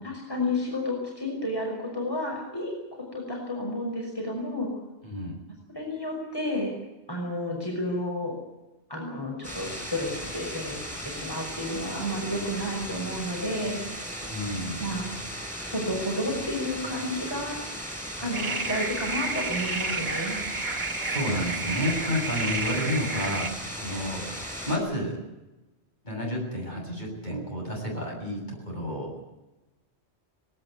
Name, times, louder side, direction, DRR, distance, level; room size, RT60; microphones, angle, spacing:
voice 1, 0.0-4.7 5.7-6.7 7.1-8.3 8.9-10.8 11.0-13.8 14.8-15.1 15.6-17.6 18.2-20.4, left 1 dB, 20° left, -1 dB, 5.8 m, -31 dB
sound 1, 9.4-24.8, equal, 5° right, 7.8 m, -37 dB
voice 2, 14.2-14.8 21.1-24.2 24.7-25.2 26.0-29.1, left 1 dB, 45° left, -1 dB, 7.7 m, -30 dB
sound 2, 18.3-23.5, right 3 dB, 45° right, 1.7 m, -31 dB
19.5 x 18.5 x 9.5 m, 1.0 s
omnidirectional pair, 1.1 m